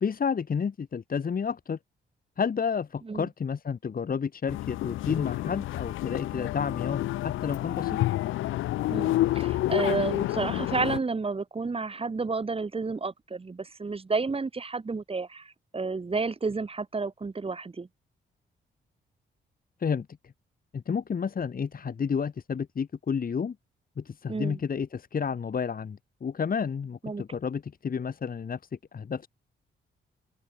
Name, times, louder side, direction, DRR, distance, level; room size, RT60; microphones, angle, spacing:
voice 1, 0.0-1.8 2.4-8.0 19.8-20.3 20.7-23.5 24.0-28.6 28.9-29.3, left 6 dB, 45° left, 1.4 m, -31 dB
sound 1, 4.5-11.0, left 15 dB, 85° left, 0.4 m, -29 dB
voice 2, 8.9-17.9 24.3-24.6 27.0-27.2, right 4 dB, 30° right, 1.4 m, -31 dB
open air
cardioid pair, 75°, 20 cm